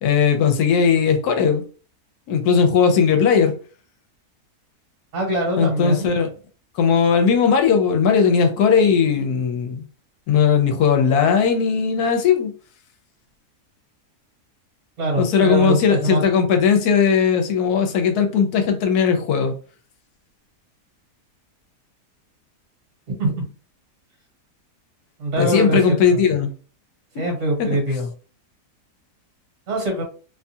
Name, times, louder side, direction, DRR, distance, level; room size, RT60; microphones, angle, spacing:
voice 1, 0.0-1.6 2.3-3.5 5.6-6.3 6.7-9.9 10.3-12.5 15.2-19.6 25.4-26.5 27.6-27.8, left 6 dB, 80° left, 1.1 m, -18 dB
voice 2, 5.1-6.1 15.0-16.2 23.2-23.5 25.2-25.8 26.1-26.2 27.2-28.1 29.7-30.0, right 1 dB, 55° right, 1.2 m, -23 dB
2.8 x 2.3 x 2.6 m
omnidirectional pair, 1.7 m